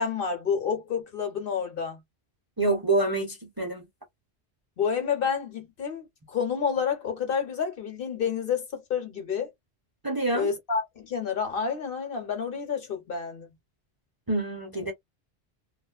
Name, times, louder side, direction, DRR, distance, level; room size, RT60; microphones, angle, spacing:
voice 1, 0.0-2.0 4.8-9.5 10.3-13.5, left 6 dB, 55° left, 0.9 m, -29 dB
voice 2, 2.6-3.8 10.0-10.5 14.3-14.9, right 2 dB, 25° right, 0.7 m, -26 dB
2.5 x 2.3 x 2.3 m
omnidirectional pair, 1.1 m